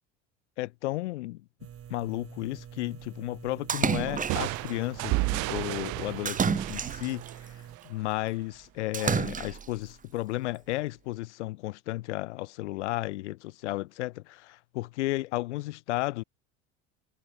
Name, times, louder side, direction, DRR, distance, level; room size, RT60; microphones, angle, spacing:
voice 1, 0.6-1.4 1.9-7.5 7.8-16.2, left 18 dB, 70° left, 0.9 m, -33 dB
sound 1, 1.6-7.8, right 9 dB, 40° right, 5.5 m, -47 dB
Splash splatter, 3.7-4.7 6.3-7.3 8.9-9.8, right 7 dB, 20° right, 1.0 m, -29 dB
sound 2, 4.3-8.0, right 27 dB, 55° right, 1.2 m, -32 dB
hypercardioid pair, 75°, 36 cm